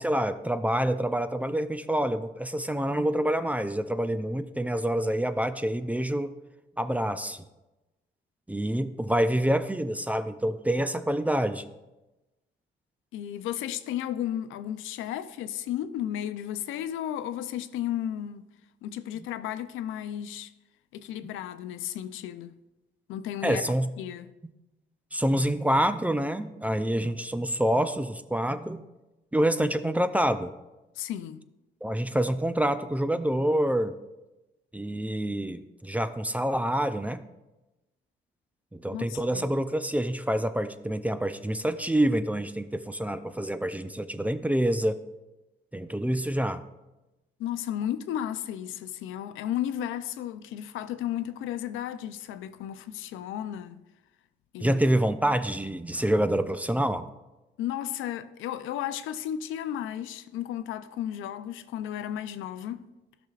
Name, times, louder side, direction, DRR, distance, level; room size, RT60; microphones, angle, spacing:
voice 1, 0.0-6.3 6.8-7.4 8.5-11.7 21.2-21.3 23.4-23.9 25.1-28.8 29.3-30.5 31.8-33.9 34.7-37.2 38.7-45.0 45.7-46.6 54.6-57.1, right 1 dB, 5° right, 0.4 m, -27 dB
voice 2, 13.1-18.4 18.8-20.5 20.9-22.5 23.1-23.6 24.0-24.3 31.0-31.4 38.9-39.5 47.4-53.8 54.5-54.8 57.6-62.9, left 11 dB, 85° left, 0.5 m, -34 dB
13.0 x 6.0 x 2.4 m
cardioid pair, 90°, 20 cm